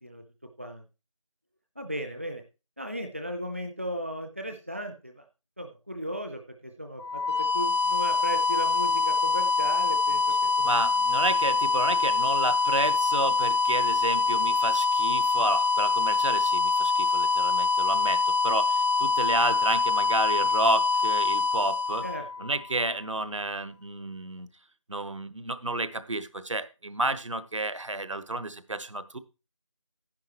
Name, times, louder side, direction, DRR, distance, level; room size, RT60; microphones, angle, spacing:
voice 1, 1.8-2.4 2.8-5.2 5.6-10.7 22.0-22.3, equal, 25° right, 5 dB, 0.6 m, -36 dB
sound 1, 7.0-22.8, left 4 dB, 55° left, 0.6 m, -25 dB
voice 2, 10.6-22.0 22.4-24.5 24.9-29.2, right 2 dB, 65° right, 13 dB, 1.2 m, -31 dB
11.0 x 10.5 x 3.0 m, 0.30 s
figure-of-eight pair, 175°, 17 cm